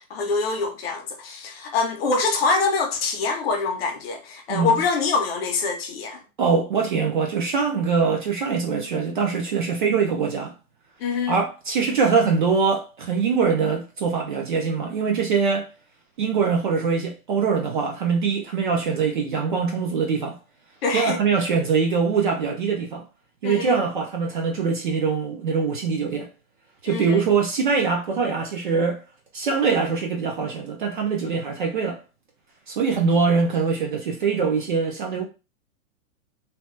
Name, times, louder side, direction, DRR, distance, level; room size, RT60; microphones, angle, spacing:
voice 1, 0.0-6.2 11.0-11.4 20.8-21.2 23.4-23.7 26.9-27.2, left 4 dB, 45° left, 0.6 m, -25 dB
voice 2, 4.5-4.8 6.4-10.5 11.3-15.7 16.2-20.4 20.9-23.0 23.4-26.3 26.8-29.0 29.3-32.0 32.7-35.2, right 5 dB, 40° right, 0.4 m, -23 dB
2.8 x 2.1 x 3.1 m
supercardioid pair, 175°, 43 cm